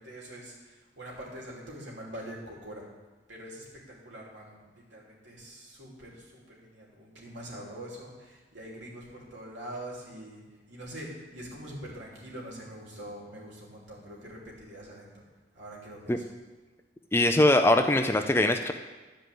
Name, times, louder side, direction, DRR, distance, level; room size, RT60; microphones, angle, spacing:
voice 1, 0.0-2.9 3.3-15.2 15.5-16.2, right 1 dB, 80° right, -3 dB, 3.0 m, -44 dB
voice 2, 17.1-18.7, left 1 dB, 15° left, 6 dB, 0.4 m, -22 dB
11.0 x 5.3 x 7.6 m, 1.3 s
head